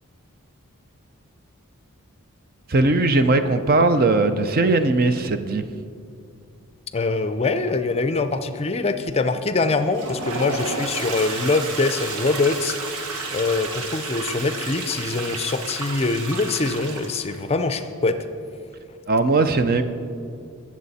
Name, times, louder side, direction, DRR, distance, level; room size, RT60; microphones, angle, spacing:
voice 1, 2.7-5.6 19.1-19.8, right 2 dB, 40° right, 9 dB, 0.6 m, -19 dB
voice 2, 6.9-18.2, left 3 dB, 25° left, 10 dB, 0.5 m, -24 dB
Toilet flush, 9.8-17.4, right 3 dB, 90° right, 1.3 m, -31 dB
20.5 x 7.4 x 4.2 m, 2.4 s
head